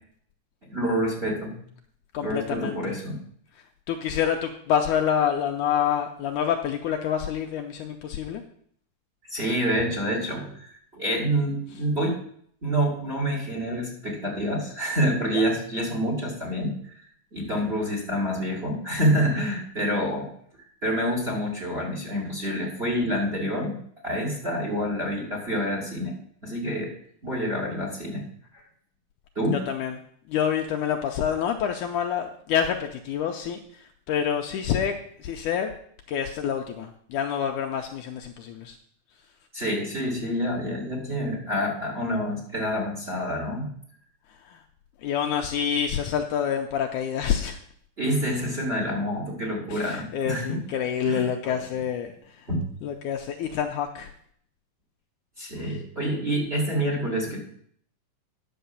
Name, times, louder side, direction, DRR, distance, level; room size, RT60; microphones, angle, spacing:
voice 1, 0.7-1.6 2.2-3.2 9.3-12.2 12.6-17.0 17.3-20.3 20.8-23.8 24.0-26.1 26.4-26.9 27.2-28.2 29.4-29.6 39.5-43.7 48.0-50.6 51.0-51.5 52.5-52.6 55.4-57.4, equal, 20° right, -1 dB, 1.9 m, -27 dB
voice 2, 2.1-3.0 3.9-8.4 15.3-15.4 29.4-30.0 30.3-33.6 34.1-34.9 35.2-35.7 36.1-38.8 44.5-44.6 45.0-47.6 49.7-52.1 52.8-54.1 55.6-55.8, left 8 dB, 80° left, 4 dB, 1.9 m, -27 dB
10.5 x 5.7 x 6.9 m, 0.63 s
omnidirectional pair, 4.0 m